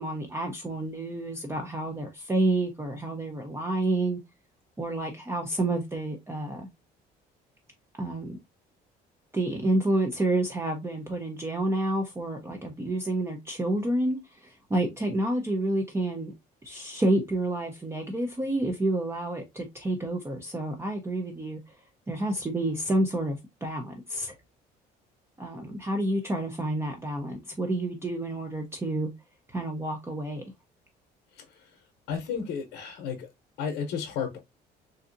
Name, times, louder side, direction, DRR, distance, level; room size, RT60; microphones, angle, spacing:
voice 1, 0.0-4.2 4.8-6.7 8.0-8.4 9.3-16.3 16.6-21.7 22.1-24.3 25.4-29.1 29.5-30.4, right 1 dB, 15° right, 0.6 m, -29 dB
voice 2, 31.3-31.8 32.1-33.3 33.6-34.4, left 7 dB, 85° left, 0.8 m, -33 dB
3.9 x 2.7 x 2.5 m
cardioid pair, 110°, 17 cm